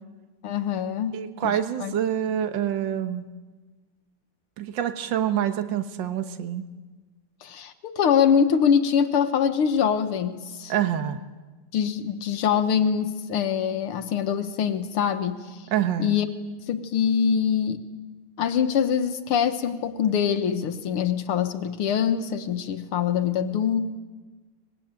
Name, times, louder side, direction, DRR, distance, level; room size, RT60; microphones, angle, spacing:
voice 1, 0.4-2.0 7.4-10.7 11.7-15.6 16.0-16.3 16.7-17.8 18.4-24.0, left 7 dB, 85° left, 8 dB, 2.1 m, -24 dB
voice 2, 1.1-3.3 4.6-6.6 10.7-11.2 15.7-16.2, right 10 dB, 60° right, 8 dB, 1.9 m, -26 dB
24.5 x 21.5 x 8.9 m, 1.3 s
omnidirectional pair, 2.4 m